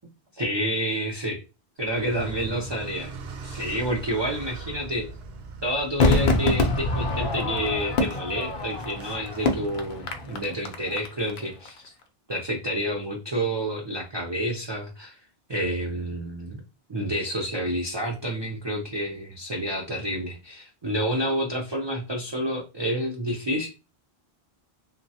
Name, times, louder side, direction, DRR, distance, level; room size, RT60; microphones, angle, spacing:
voice 1, 0.3-1.4 1.8-3.1 3.4-5.1 5.6-11.8 12.3-15.2 15.5-16.6 16.9-23.7, equal, 40° right, 0 dB, 0.4 m, -29 dB
Car, 1.8-10.0, right 4 dB, 75° right, 0.8 m, -41 dB
Crowd / Fireworks, 6.0-11.4 11.7-11.8, left 2 dB, 65° left, 0.7 m, -25 dB
3.1 x 2.2 x 2.6 m, 0.29 s
omnidirectional pair, 1.1 m